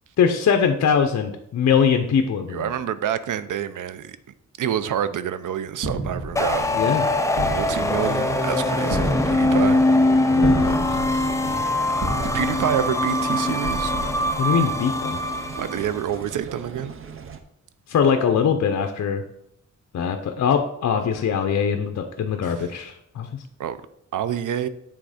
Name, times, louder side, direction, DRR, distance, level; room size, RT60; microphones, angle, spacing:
voice 1, 0.2-2.7 6.7-7.0 10.3-11.6 14.4-15.2 17.9-19.2 19.9-23.3, left 7 dB, 60° left, 6 dB, 0.6 m, -22 dB
voice 2, 2.5-4.2 4.6-6.6 7.4-9.8 12.2-13.9 15.6-16.9 22.4-22.7 23.6-23.8 24.1-24.7, right 9 dB, 85° right, 13 dB, 0.5 m, -27 dB
sound 1, 5.8-15.1, right 1 dB, 65° right, 1.7 m, -32 dB
sound 2, 6.4-16.0, left 2 dB, 10° left, 0.4 m, -22 dB
sound 3, 6.5-17.4, right 6 dB, 45° right, 0.6 m, -38 dB
7.6 x 3.6 x 4.9 m, 0.75 s
wide cardioid pair, 140°, 30 cm